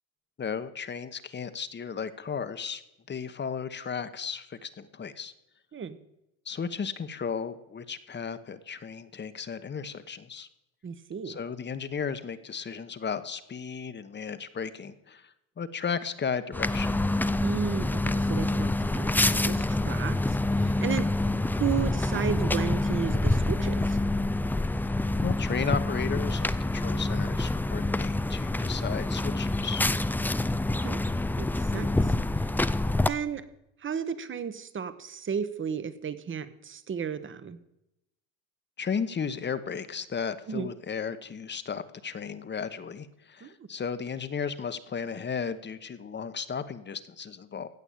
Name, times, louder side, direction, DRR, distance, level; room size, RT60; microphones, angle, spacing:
voice 1, 0.4-2.8 3.1-5.3 6.5-10.5 11.2-17.0 24.8-24.9 25.2-29.8 38.8-47.7, left 6 dB, 30° left, 12 dB, 1.0 m, -34 dB
voice 2, 10.8-11.4 17.4-21.1 21.5-24.0 30.8-31.0 31.4-32.1 32.4-32.5 33.1-33.4 33.8-37.6 40.5-40.7 43.4-43.7, right 7 dB, 30° right, 14 dB, 1.2 m, -33 dB
sound 1, 16.5-33.1, left 2 dB, 5° left, 0.4 m, -27 dB
16.0 x 6.1 x 8.7 m, 0.87 s
supercardioid pair, 90°, 37 cm